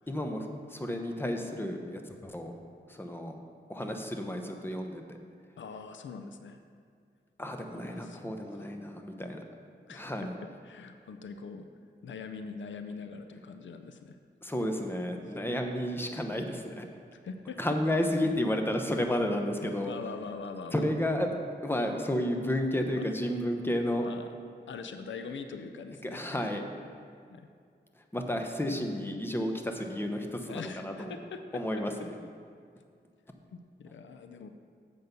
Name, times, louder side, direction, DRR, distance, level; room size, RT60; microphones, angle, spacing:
voice 1, 0.1-2.5 2.9-3.4 3.7-5.2 7.4-9.4 9.9-10.4 14.4-16.9 17.6-20.0 20.7-21.3 21.6-24.1 26.0-26.6 28.1-31.2 31.5-32.1, left 1 dB, 10° left, 4 dB, 0.8 m, -32 dB
voice 2, 5.6-6.6 7.8-8.7 9.9-11.7 12.0-14.2 17.1-17.6 18.2-18.3 19.6-21.1 22.9-23.0 24.0-24.3 24.7-26.4 27.3-27.5 30.5-32.1 33.5-34.5, left 5 dB, 90° left, 8 dB, 0.5 m, -43 dB
7.8 x 5.3 x 6.8 m, 2.2 s
wide cardioid pair, 75°, 19 cm